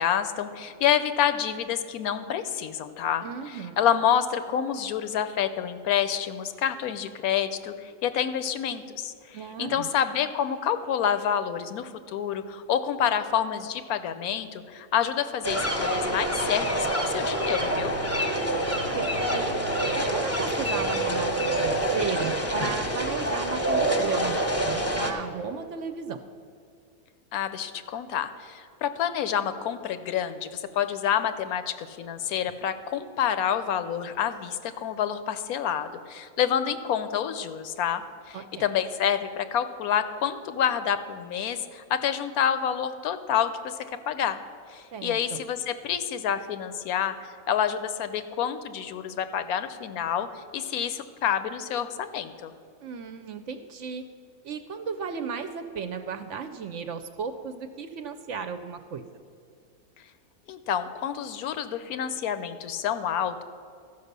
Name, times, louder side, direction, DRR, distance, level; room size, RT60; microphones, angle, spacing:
voice 1, 0.0-3.2 3.8-17.9 27.3-43.7 44.1-44.4 44.7-52.5 60.5-63.4, left 9 dB, 80° left, 11 dB, 1.1 m, -28 dB
voice 2, 3.2-3.8 9.3-9.9 18.9-19.5 19.9-26.2 38.3-38.6 44.9-45.4 52.8-54.0 54.4-59.0, right 6 dB, 65° right, 9 dB, 0.8 m, -35 dB
sound 1, 15.4-25.1, right 1 dB, 15° left, 0.8 m, -26 dB
13.5 x 5.5 x 6.6 m, 2.3 s
omnidirectional pair, 1.6 m